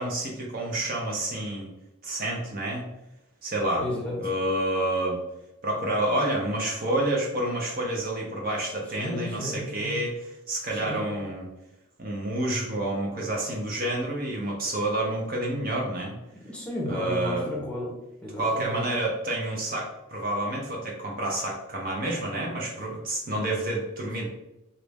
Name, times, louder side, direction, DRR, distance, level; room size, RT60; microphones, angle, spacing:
voice 1, 0.0-1.7 2.0-2.9 3.4-3.9 4.2-5.2 5.6-10.2 10.5-11.4 12.0-16.1 16.9-17.5 18.4-24.3, right 1 dB, 40° right, -2 dB, 0.6 m, -29 dB
voice 2, 3.8-4.2 9.0-10.0 10.7-11.1 16.4-17.9 18.2-18.9, left 1 dB, 5° left, -4 dB, 0.7 m, -33 dB
3.0 x 2.5 x 3.4 m, 0.91 s
head